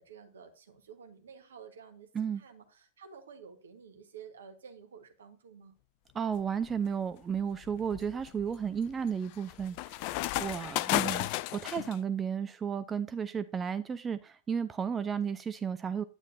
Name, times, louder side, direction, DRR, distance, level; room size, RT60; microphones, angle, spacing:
voice 1, 0.0-5.8, right 6 dB, 65° right, 1.4 m, -51 dB
voice 2, 6.1-16.0, right 7 dB, 20° right, 0.4 m, -33 dB
sound 1, 6.4-6.8 7.3-12.0, left 17 dB, 45° left, 0.4 m, -34 dB
9.5 x 8.9 x 2.7 m
figure-of-eight pair, 90°, 0 cm